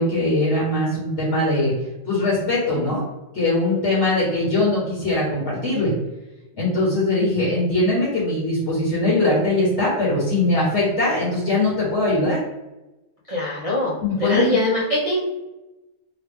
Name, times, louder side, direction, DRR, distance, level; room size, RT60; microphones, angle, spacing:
voice 1, 0.0-1.7 2.0-3.0 3.3-5.9 6.6-12.4 14.0-14.6, left 2 dB, 60° left, -6 dB, 1.2 m, -21 dB
voice 2, 13.3-13.9 14.2-15.2, left 1 dB, 45° right, -8 dB, 0.4 m, -22 dB
3.0 x 2.2 x 3.3 m, 1.0 s
omnidirectional pair, 1.4 m